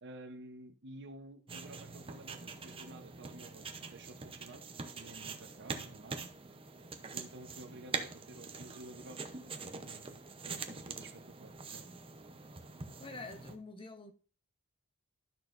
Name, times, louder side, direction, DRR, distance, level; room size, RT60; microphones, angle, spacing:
voice 1, 0.0-4.6 4.9-6.3 7.1-11.8, right 2 dB, 50° right, 0.9 m, -52 dB
sound 1, 1.5-13.6, right 4 dB, 25° right, 0.7 m, -44 dB
voice 2, 13.0-14.1, left 3 dB, 25° left, 0.9 m, -47 dB
12.0 x 6.3 x 2.6 m
head